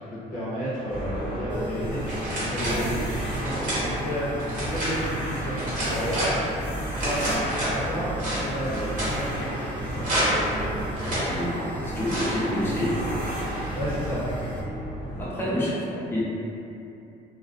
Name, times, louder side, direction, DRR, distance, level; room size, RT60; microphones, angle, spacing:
voice 1, 0.0-6.4 6.9-7.2 7.6-9.7 9.9-10.5 13.7-14.2 15.4-15.5, equal, 55° left, -10 dB, 0.8 m, -32 dB
sound 1, 0.9-15.3, right 1 dB, 30° left, 1.2 m, -33 dB
sound 2, 1.5-14.6, right 1 dB, 30° right, 0.5 m, -38 dB
sound 3, 2.1-2.8 3.3-3.9 4.4-5.0 5.6-6.4 7.0-7.8 8.2-9.1 10.0-10.5 11.0-11.3 12.1-12.4, right 1 dB, 50° right, 1.0 m, -29 dB
voice 2, 11.3-13.0 15.2-16.2, equal, 15° left, -9 dB, 0.7 m, -28 dB
2.3 x 2.2 x 2.4 m, 2.8 s
cardioid pair, 110°, 17 cm